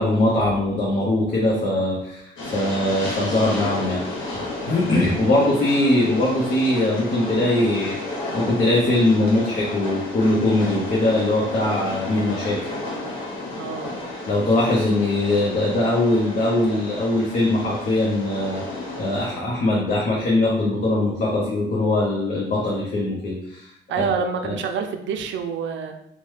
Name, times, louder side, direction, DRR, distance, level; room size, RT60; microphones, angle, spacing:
voice 1, 0.0-4.0 4.6-12.7 14.3-23.7 24.0-24.1 24.4-24.5, left 1 dB, 45° left, -4 dB, 0.7 m, -21 dB
Train, 2.4-19.3, left 2 dB, 80° left, 0.9 m, -32 dB
voice 2, 13.6-13.9 23.9-25.9, right 6 dB, 70° right, 6 dB, 0.4 m, -27 dB
2.9 x 2.1 x 3.1 m, 0.74 s
cardioid pair, 90°, 20 cm